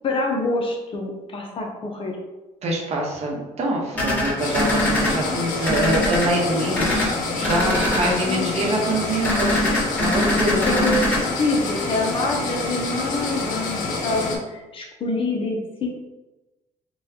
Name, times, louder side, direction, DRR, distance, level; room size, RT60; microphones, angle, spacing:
voice 1, 0.0-2.1 8.2-8.5 10.4-15.9, left 2 dB, 40° left, 1 dB, 0.7 m, -26 dB
voice 2, 2.6-9.6 10.0-10.8, right 1 dB, 55° right, -1 dB, 0.9 m, -25 dB
sound 1, 3.9-5.1 5.6-6.3 6.7-7.1 7.4-8.1 9.2-11.2, left 1 dB, 15° left, 1.3 m, -22 dB
sound 2, 4.4-14.4, left 3 dB, 85° left, 0.6 m, -27 dB
3.9 x 2.3 x 2.7 m, 1.1 s
cardioid pair, 100°, 13 cm